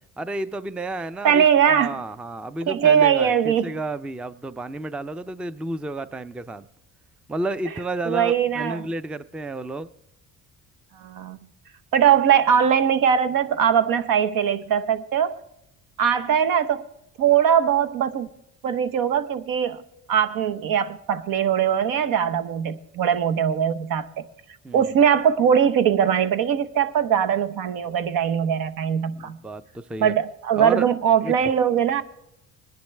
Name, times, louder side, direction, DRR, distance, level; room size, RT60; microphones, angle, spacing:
voice 1, 0.2-6.7 7.3-9.9 24.6-24.9 29.1-30.2 30.6-30.8 31.2-31.3, right 2 dB, 5° right, 14 dB, 0.4 m, -31 dB
voice 2, 1.2-2.0 2.7-3.7 8.0-8.9 11.0-11.4 11.9-15.4 16.0-16.9 17.2-18.3 18.6-19.8 20.1-24.3 24.7-29.4 30.0-32.0, right 8 dB, 75° right, 10 dB, 1.0 m, -21 dB
20.5 x 10.5 x 3.3 m, 0.82 s
cardioid pair, 90°, 34 cm